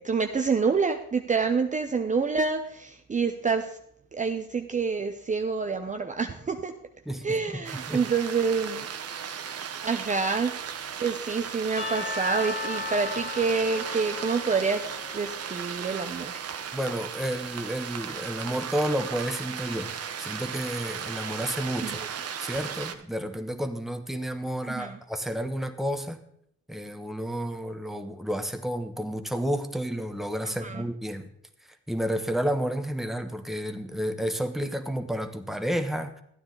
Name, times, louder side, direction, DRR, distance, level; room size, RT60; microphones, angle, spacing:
voice 1, 0.0-3.8 4.1-6.7 7.2-8.9 9.8-10.5 11.0-16.5 21.8-22.1 24.7-25.0 30.4-30.8, right 5 dB, 25° right, 5 dB, 0.7 m, -27 dB
voice 2, 7.1-7.6 7.9-8.0 16.7-22.0 22.4-26.2 26.7-31.3 31.9-36.2, equal, ahead, 6 dB, 1.1 m, -31 dB
sound 1, 7.6-22.9, right 7 dB, 55° right, 1.0 m, -36 dB
Percussion / Church bell, 11.8-15.7, left 4 dB, 40° left, 1.9 m, -36 dB
12.5 x 9.5 x 4.0 m, 0.69 s
cardioid pair, 90°, 30 cm